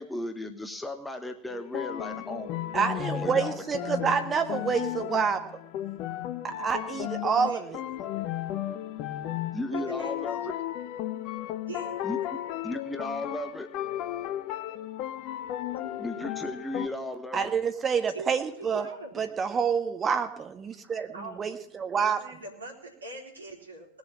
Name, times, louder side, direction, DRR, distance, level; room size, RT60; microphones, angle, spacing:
voice 1, 0.0-2.5 3.2-3.6 4.0-4.1 9.5-10.5 12.0-12.2 12.6-13.7 16.0-17.5, left 1 dB, 5° left, 6 dB, 1.2 m, -35 dB
sound 1, 1.5-16.9, left 12 dB, 40° left, 0.8 m, -34 dB
voice 2, 2.7-5.6 6.6-7.8 17.3-18.9 19.1-22.2, right 6 dB, 20° right, 7 dB, 1.6 m, -28 dB
voice 3, 9.7-10.1 11.7-12.0 18.1-18.3 18.6-19.3 21.1-21.4 21.9-23.9, right 2 dB, 75° right, 2 dB, 3.7 m, -42 dB
19.5 x 7.1 x 8.7 m, 0.74 s
figure-of-eight pair, 90°, 0 cm